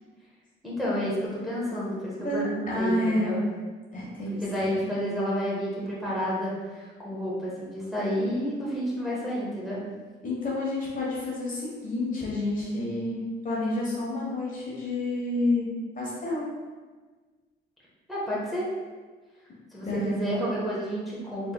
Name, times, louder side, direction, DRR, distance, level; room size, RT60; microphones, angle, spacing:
voice 1, 0.6-3.4 4.4-9.8 18.1-18.6 19.7-21.5, equal, ahead, -8 dB, 1.3 m, -30 dB
voice 2, 2.2-3.3 3.9-5.0 10.2-13.2 13.4-15.7 16.0-16.5 19.8-20.5, left 1 dB, 45° left, -5 dB, 1.2 m, -29 dB
4.1 x 3.4 x 2.3 m, 1.4 s
cardioid pair, 90°, 20 cm